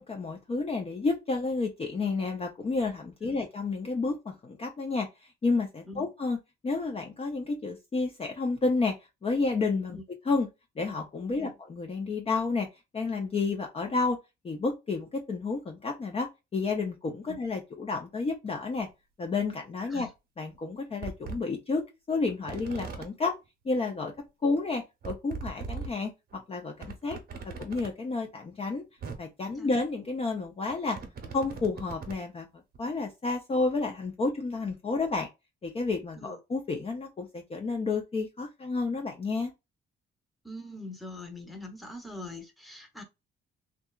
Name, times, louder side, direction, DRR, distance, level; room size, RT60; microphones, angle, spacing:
voice 1, 0.0-5.1 5.4-6.4 6.6-9.0 9.2-10.0 10.3-10.5 10.8-12.7 12.9-14.2 14.4-18.9 19.2-20.1 20.4-23.3 23.6-24.1 24.4-27.2 27.4-28.8 29.2-31.0 31.3-32.5 32.8-35.3 35.6-39.5, left 3 dB, 30° left, 0.5 m, -30 dB
sound 1, 18.8-18.9 20.0-20.1 20.5-20.6 21.0-21.4 22.3-23.1 24.2-24.3 24.5-24.6 25.0-25.9 26.3-26.4 26.8-27.9 28.7-28.8 29.0-29.2 30.4-32.2 32.7-32.8, right 5 dB, 50° right, 0.8 m, -39 dB
voice 2, 40.4-43.0, left 2 dB, ahead, 0.8 m, -43 dB
2.7 x 2.3 x 2.3 m
cardioid pair, 90°, 20 cm